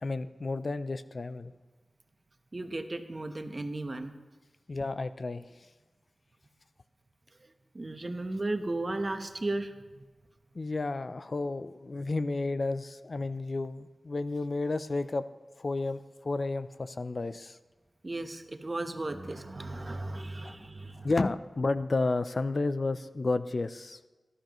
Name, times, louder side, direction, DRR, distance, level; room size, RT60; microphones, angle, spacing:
voice 1, 0.0-1.5 4.7-5.7 10.5-15.2 15.6-17.6 20.4-20.5 21.0-24.0, left 3 dB, 55° left, 13 dB, 0.5 m, -32 dB
voice 2, 2.5-4.1 7.4-9.7 18.0-21.1, right 2 dB, 40° right, 7 dB, 1.1 m, -35 dB
18.0 x 11.5 x 3.1 m, 1.2 s
wide cardioid pair, 60°, 0 cm